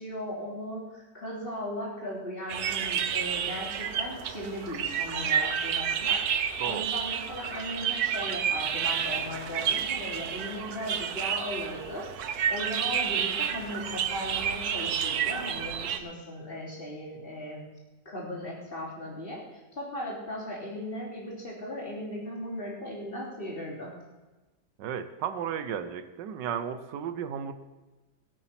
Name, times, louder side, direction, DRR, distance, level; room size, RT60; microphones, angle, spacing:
voice 1, 0.0-17.7 18.1-23.9, equal, 30° left, -3 dB, 3.7 m, -37 dB
sound 1, 2.5-16.0, right 8 dB, 65° right, 1.3 m, -30 dB
voice 2, 24.8-27.5, right 8 dB, 85° right, 11 dB, 1.4 m, -34 dB
18.0 x 8.4 x 5.9 m, 1.2 s
omnidirectional pair, 1.9 m